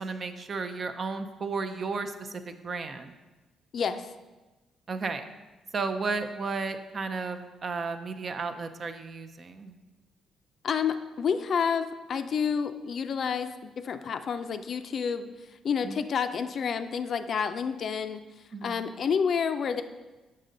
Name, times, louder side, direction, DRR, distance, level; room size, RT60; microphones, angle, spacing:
voice 1, 0.0-3.1 4.9-5.2 5.7-9.7 15.8-16.0 18.5-18.8, right 4 dB, 45° right, 8 dB, 0.5 m, -33 dB
voice 2, 3.7-4.1 10.6-15.3 15.6-18.2 18.6-19.8, left 6 dB, 55° left, 9 dB, 0.4 m, -29 dB
6.5 x 5.3 x 3.8 m, 1.2 s
cardioid pair, 90°, 0 cm